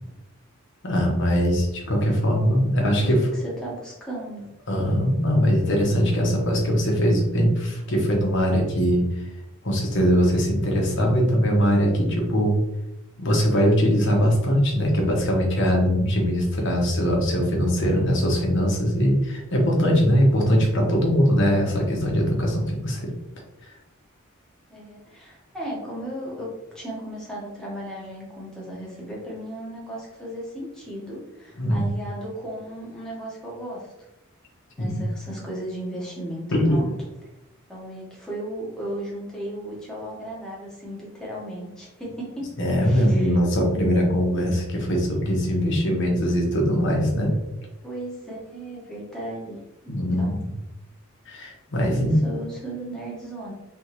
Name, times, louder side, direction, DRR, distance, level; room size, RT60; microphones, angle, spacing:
voice 1, 0.8-3.2 4.7-9.0 9.6-12.6 13.2-23.1 31.6-31.8 34.8-35.0 36.5-36.8 42.6-47.4 49.9-50.3 51.3-52.2, equal, 60° left, -1 dB, 1.1 m, -21 dB
voice 2, 2.6-4.5 24.7-33.9 34.8-36.9 37.7-42.5 42.8-43.4 47.8-50.4 51.8-53.5, right 1 dB, 5° left, -6 dB, 1.4 m, -36 dB
3.5 x 3.5 x 3.0 m, 0.93 s
head